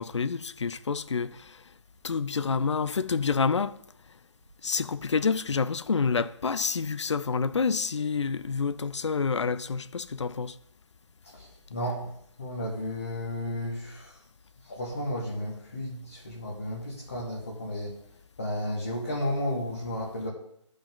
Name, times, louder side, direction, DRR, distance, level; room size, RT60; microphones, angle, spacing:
voice 1, 0.0-1.6 2.0-3.8 4.6-10.6, left 5 dB, 65° left, 0.5 m, -28 dB
voice 2, 11.2-12.1 12.4-14.2 14.6-17.9 18.4-20.3, left 1 dB, 25° left, 1.3 m, -33 dB
14.0 x 5.2 x 3.7 m
hypercardioid pair, 180°, 16 cm